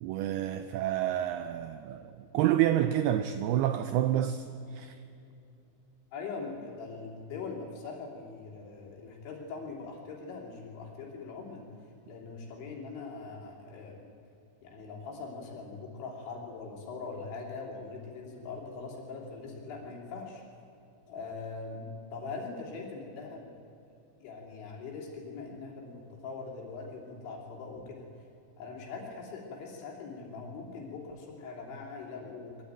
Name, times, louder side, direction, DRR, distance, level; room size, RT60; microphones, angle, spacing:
voice 1, 0.0-4.5 4.7-5.0, right 12 dB, 85° right, 2.2 m, -28 dB
voice 2, 6.1-11.6 12.1-14.0 14.6-20.4 21.1-23.5 24.2-28.1 28.6-32.6, left 4 dB, 85° left, 5.4 m, -42 dB
23.5 x 13.0 x 8.9 m
omnidirectional pair, 5.2 m